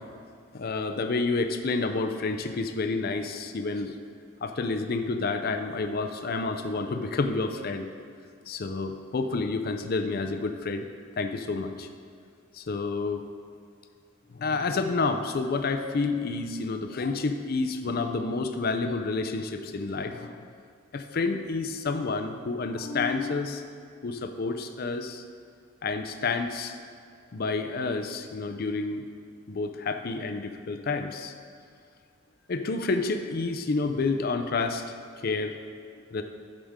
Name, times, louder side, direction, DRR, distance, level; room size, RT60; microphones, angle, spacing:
voice 1, 0.5-4.0 4.4-7.9 8.5-10.9 11.2-11.9 12.5-13.2 14.3-20.4 20.9-23.6 24.0-25.2 25.8-26.7 27.3-29.0 29.5-31.3 32.5-34.8 35.2-35.5 36.1-36.2, left 3 dB, 45° left, 7 dB, 0.4 m, -29 dB
12.5 x 5.0 x 3.6 m, 2.3 s
head